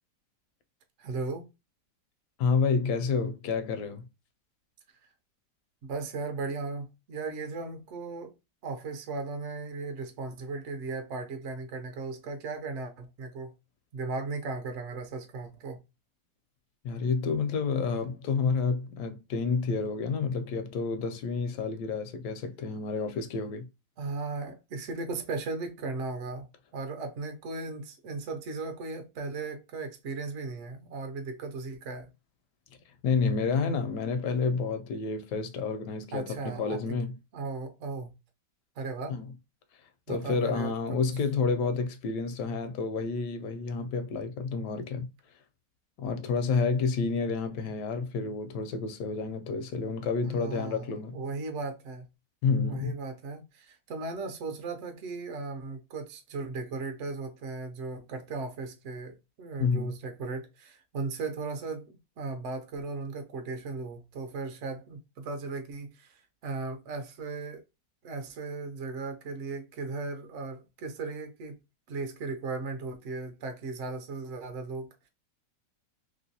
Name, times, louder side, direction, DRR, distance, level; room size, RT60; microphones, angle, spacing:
voice 1, 1.0-1.5 5.8-8.3 8.6-13.5 13.9-15.8 24.0-26.5 26.7-32.1 36.1-36.8 37.3-38.1 38.8-39.2 40.1-40.7 50.3-52.0 52.7-67.6 68.0-71.6 71.9-75.1, right 3 dB, 60° right, 0.8 m, -37 dB
voice 2, 2.4-4.1 16.8-23.6 33.0-37.1 39.1-39.3 40.1-45.1 46.0-51.2 52.4-52.9 59.6-59.9, left 4 dB, 80° left, 1.1 m, -29 dB
3.1 x 3.0 x 2.7 m
omnidirectional pair, 1.8 m